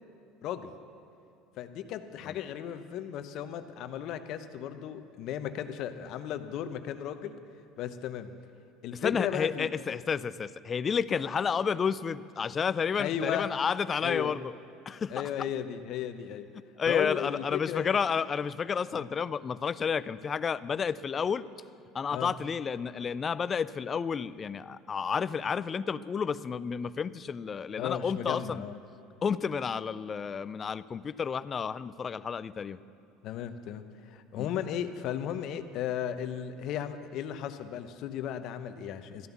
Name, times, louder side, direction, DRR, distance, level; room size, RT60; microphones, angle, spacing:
voice 1, 0.4-0.7 1.6-7.4 7.8-8.3 8.8-9.7 13.0-13.5 14.0-14.4 15.1-16.5 16.9-18.0 18.9-19.0 22.1-22.3 27.8-28.8 33.2-39.3, left 10 dB, 60° left, 10 dB, 0.8 m, -35 dB
voice 2, 8.9-14.5 14.9-15.2 16.8-21.5 21.9-28.6 29.2-32.8 34.4-34.5, left 6 dB, 35° left, 17 dB, 0.4 m, -31 dB
14.0 x 10.5 x 7.1 m, 2.6 s
hypercardioid pair, 75°, 0 cm